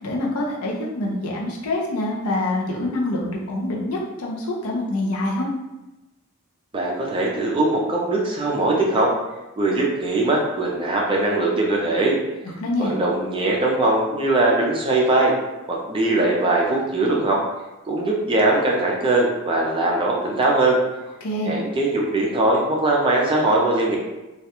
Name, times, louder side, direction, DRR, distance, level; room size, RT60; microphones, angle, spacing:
voice 1, 0.0-5.5 12.4-12.9 21.2-21.5, left 1 dB, 80° left, -2 dB, 0.5 m, -26 dB
voice 2, 6.7-9.1 9.6-12.2 12.8-15.3 15.7-17.4 17.9-20.8 21.5-24.0, right 2 dB, 25° right, -2 dB, 0.4 m, -21 dB
2.3 x 2.1 x 2.9 m, 1.0 s
head